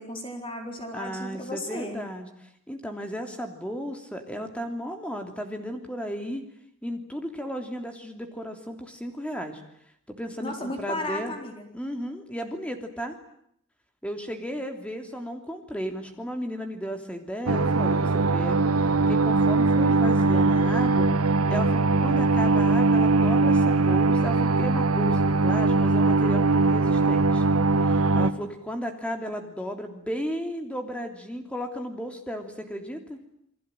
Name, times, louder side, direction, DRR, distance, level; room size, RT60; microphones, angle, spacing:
voice 1, 0.0-2.0 10.4-11.7, left 1 dB, 25° left, 3 dB, 4.1 m, -34 dB
voice 2, 0.9-6.4 6.8-9.6 10.1-11.3 11.7-13.2 14.0-27.4 27.8-33.2, equal, 5° left, 5 dB, 3.1 m, -34 dB
sound 1, 17.5-28.3, right 3 dB, 80° right, 1.5 m, -21 dB
28.5 x 22.0 x 9.2 m, 0.71 s
head